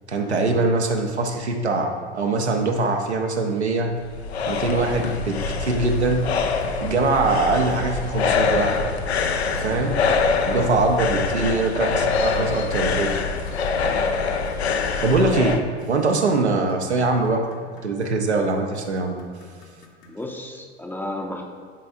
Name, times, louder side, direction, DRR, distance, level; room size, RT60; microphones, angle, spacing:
voice 1, 0.1-3.9 4.5-6.2 6.8-8.8 9.5-10.0 10.4-13.1 15.0-15.6 15.9-17.5 17.8-19.1, right 3 dB, 80° right, 2 dB, 0.8 m, -22 dB
sound 1, 3.8-15.6, left 5 dB, 75° left, 0.6 m, -24 dB
sound 2, 5.4-5.6 6.0-6.2 6.6-6.8 7.2-7.4 7.7-7.9 8.2-8.4 8.7-8.9 9.2-9.4 9.7-9.9 10.2-10.4 10.6-20.2, left 1 dB, 55° left, 1.1 m, -47 dB
voice 2, 10.4-10.8 13.8-14.0 20.1-21.4, left 1 dB, 5° left, 1 dB, 0.6 m, -34 dB
11.5 x 4.2 x 2.5 m, 2.1 s
figure-of-eight pair, 75°, 33 cm